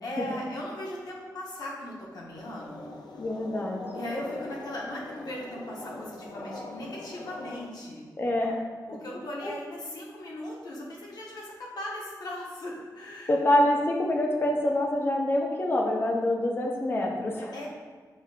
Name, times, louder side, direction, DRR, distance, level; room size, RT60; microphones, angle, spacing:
voice 1, 0.0-2.9 3.9-8.1 8.9-13.4 17.5-17.7, left 1 dB, 70° left, -3 dB, 0.9 m, -38 dB
sound 1, 2.3-7.7, left 2 dB, 90° left, 0.4 m, -42 dB
voice 2, 3.2-3.8 8.2-8.6 9.4-9.5 13.3-17.5, left 1 dB, 30° left, 0 dB, 0.6 m, -26 dB
7.1 x 2.5 x 2.4 m, 1.5 s
wide cardioid pair, 170°, 7 cm